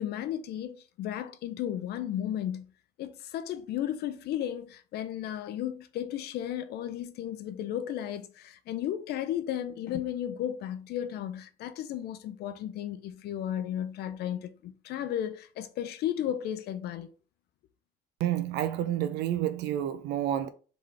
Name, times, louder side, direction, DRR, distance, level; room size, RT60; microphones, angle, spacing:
voice 1, 0.0-2.7 3.0-17.1, left 11 dB, 70° left, 0.6 m, -34 dB
voice 2, 18.2-20.5, right 11 dB, 85° right, 0.6 m, -29 dB
3.9 x 3.7 x 3.4 m
cardioid pair, 110°, 17 cm